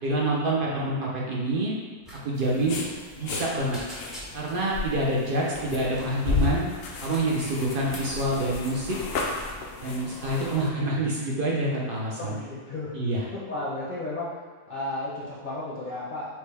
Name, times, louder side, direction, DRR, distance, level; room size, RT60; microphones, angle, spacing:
voice 1, 0.0-1.7 2.2-2.8 3.2-3.8 4.3-6.7 7.0-9.0 9.8-12.4 12.9-13.2, right 1 dB, 60° right, -4 dB, 0.5 m, -27 dB
sound 1, 2.0-2.2 2.5-2.6 3.0-3.4 3.7-4.6 5.5-6.2 6.7-8.2 8.6-8.9, equal, ahead, 0.4 m, -43 dB
sound 2, 2.3-10.7, left 4 dB, 75° left, 0.5 m, -33 dB
voice 2, 12.2-12.9 13.3-14.3 14.7-16.4, left 2 dB, 40° left, -8 dB, 0.8 m, -33 dB
5.9 x 2.2 x 3.3 m, 1.5 s
omnidirectional pair, 1.6 m